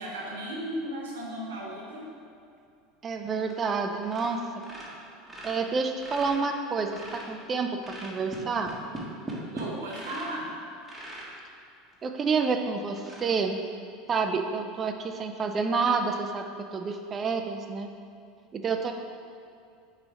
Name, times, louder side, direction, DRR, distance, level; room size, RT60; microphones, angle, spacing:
voice 1, 0.0-2.1 9.5-10.5, right 1 dB, 90° right, -2 dB, 1.2 m, -35 dB
voice 2, 3.0-4.4 5.4-8.7 12.0-13.6 14.1-17.9 18.5-18.9, right 4 dB, 30° right, 5 dB, 0.5 m, -29 dB
sound 1, 3.4-3.8 4.0-4.3 4.6-7.4 7.8-10.4 10.8-11.3 11.9-12.0 12.4-12.5 13.0-13.2, right 1 dB, 10° right, 1.4 m, -40 dB
6.1 x 3.2 x 5.0 m, 2.4 s
hypercardioid pair, 95°, 0 cm